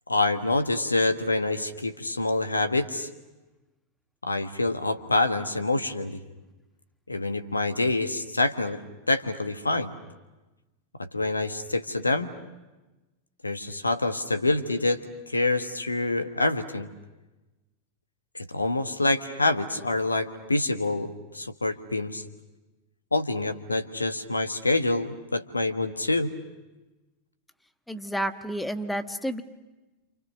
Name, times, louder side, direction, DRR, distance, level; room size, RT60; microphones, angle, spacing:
voice 1, 0.1-3.1 4.2-6.2 7.1-8.8 9.1-9.9 11.0-12.3 13.4-16.9 18.3-22.2 23.1-26.3, left 2 dB, 80° left, 10 dB, 1.3 m, -26 dB
voice 2, 27.9-29.4, right 1 dB, 5° left, 10 dB, 1.3 m, -30 dB
28.5 x 28.0 x 6.5 m, 1.1 s
figure-of-eight pair, 90°, 0 cm